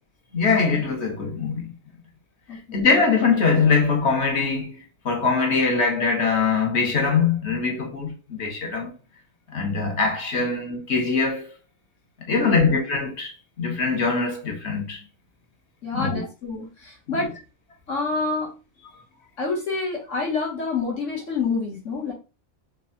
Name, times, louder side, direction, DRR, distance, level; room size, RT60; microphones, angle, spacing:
voice 1, 0.3-1.7 2.7-4.8 5.0-8.9 9.5-11.5 12.3-15.0 15.9-16.2, left 4 dB, 60° left, 1.3 m, -22 dB
voice 2, 2.5-2.9 12.5-12.7 15.8-17.3 17.9-18.5 19.4-22.1, left 4 dB, 80° left, 1.9 m, -28 dB
4.6 x 2.5 x 3.8 m
omnidirectional pair, 1.3 m